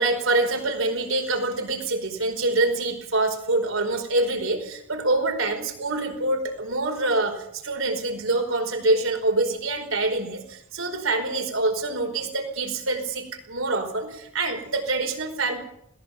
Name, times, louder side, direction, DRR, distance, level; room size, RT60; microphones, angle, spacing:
voice 1, 0.0-15.6, right 2 dB, 70° right, 4 dB, 4.9 m, -25 dB
21.5 x 18.0 x 7.3 m, 0.73 s
head